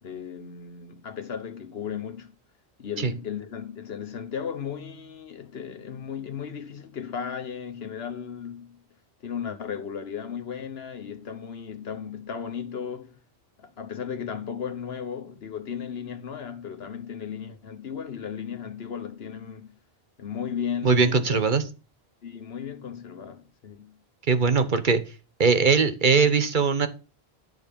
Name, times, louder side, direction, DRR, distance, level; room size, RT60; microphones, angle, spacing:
voice 1, 0.0-2.3 2.8-8.8 9.2-13.2 13.6-19.7 20.2-21.4 22.2-24.0, left 7 dB, 70° left, 1.4 m, -35 dB
voice 2, 20.8-21.6 24.3-25.0 25.4-26.9, right 5 dB, 50° right, 1.2 m, -20 dB
11.0 x 6.9 x 5.3 m
omnidirectional pair, 1.1 m